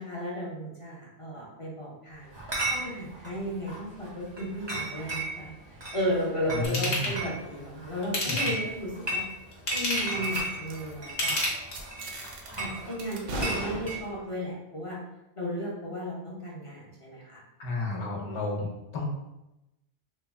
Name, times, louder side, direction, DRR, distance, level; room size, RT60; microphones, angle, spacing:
voice 1, 0.0-2.3 2.7-5.5 5.9-9.2 9.7-11.4 12.6-15.0 15.4-17.4, equal, 35° left, -5 dB, 0.6 m, -34 dB
Chatter / Chink clink, 2.3-14.0, right 2 dB, 35° right, 0.5 m, -36 dB
voice 2, 6.5-7.1 17.6-18.7 18.9-19.1, left 2 dB, 80° left, -2 dB, 1.1 m, -31 dB
Ratchet pawl / Tools, 6.6-7.2 8.0-8.7 9.5-10.2 11.1-12.0 12.5-12.6, left 1 dB, 65° left, 1.1 m, -30 dB
sound 1, 10.2-10.4 10.7-10.9 11.2-11.4 11.7-12.6 13.0-14.3, right 2 dB, 65° right, 0.8 m, -37 dB
3.1 x 2.1 x 3.3 m, 0.93 s
omnidirectional pair, 1.1 m